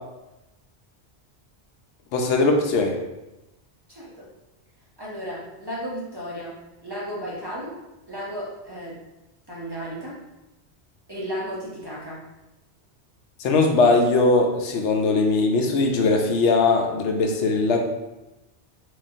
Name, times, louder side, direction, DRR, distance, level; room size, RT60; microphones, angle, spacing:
voice 1, 2.1-2.9 13.4-17.8, left 3 dB, 85° left, 2 dB, 0.9 m, -20 dB
voice 2, 3.9-4.3 5.0-7.8 8.1-9.0 9.5-10.2 11.1-12.3, equal, 25° right, -7 dB, 0.8 m, -34 dB
3.6 x 3.1 x 2.7 m, 0.99 s
omnidirectional pair, 1.2 m